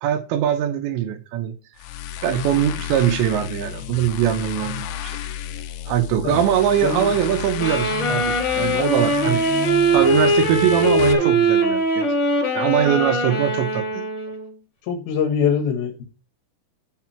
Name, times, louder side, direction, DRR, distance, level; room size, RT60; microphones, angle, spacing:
voice 1, 0.0-1.6 2.2-5.2 5.9-9.4 9.9-12.1 12.5-14.0, right 10 dB, 75° right, 2.9 m, -22 dB
sound 1, 1.8-11.1, left 10 dB, 90° left, 2.2 m, -32 dB
Wind instrument woodwind instrument, 7.6-14.5, right 1 dB, 30° left, 2.3 m, -21 dB
voice 2, 14.9-16.1, left 7 dB, 65° left, 2.7 m, -23 dB
12.0 x 4.8 x 4.4 m
omnidirectional pair, 5.5 m